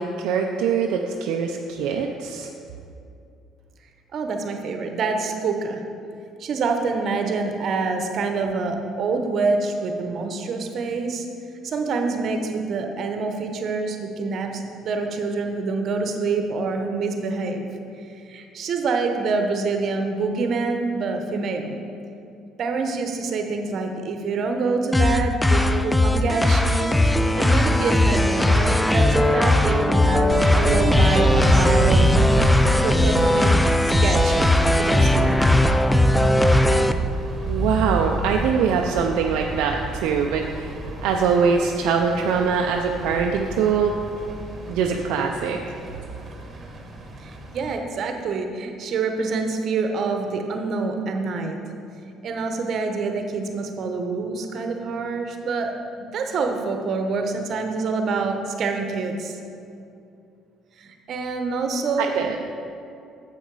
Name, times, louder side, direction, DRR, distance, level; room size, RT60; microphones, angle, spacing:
voice 1, 0.0-2.5 37.5-40.7 41.0-43.9 44.7-45.6 62.0-62.4, right 6 dB, 80° right, 2 dB, 0.4 m, -23 dB
voice 2, 4.1-5.8 6.4-11.3 11.6-17.7 18.0-21.7 22.6-32.1 32.8-35.5 47.2-51.6 52.2-59.4 60.8-62.1, right 4 dB, 55° right, 4 dB, 0.9 m, -26 dB
sound 1, 24.9-36.9, left 1 dB, 10° left, 0.4 m, -18 dB
sound 2, 30.3-47.8, right 2 dB, 40° right, 1.2 m, -28 dB
7.3 x 6.5 x 4.7 m, 2.5 s
supercardioid pair, 80°, 0 cm